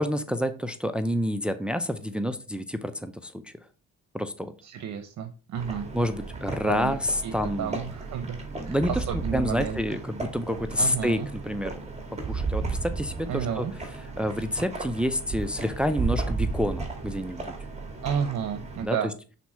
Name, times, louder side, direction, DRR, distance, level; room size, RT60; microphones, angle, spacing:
voice 1, 0.0-3.5 4.1-4.5 5.9-7.8 8.6-11.7 12.3-13.7 14.2-17.5 18.8-19.1, equal, 5° right, 10 dB, 0.6 m, -28 dB
voice 2, 4.6-5.9 6.6-6.9 7.2-7.3 7.6-9.8 10.8-11.3 13.3-13.7 18.0-19.1, right 8 dB, 65° right, 7 dB, 0.9 m, -31 dB
sound 1, 5.5-18.8, right 4 dB, 20° right, 2.1 m, -34 dB
6.0 x 4.1 x 4.8 m, 0.34 s
cardioid pair, 90°, 30 cm